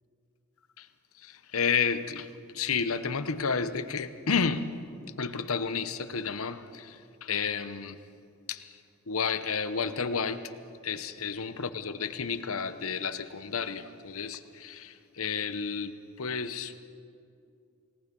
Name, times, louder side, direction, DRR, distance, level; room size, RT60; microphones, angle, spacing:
voice 1, 1.2-2.3 2.5-4.7 5.2-8.0 8.5-8.7 9.1-10.4 10.8-16.8, left 5 dB, 70° left, 11 dB, 0.9 m, -31 dB
28.5 x 18.0 x 5.4 m, 2.5 s
head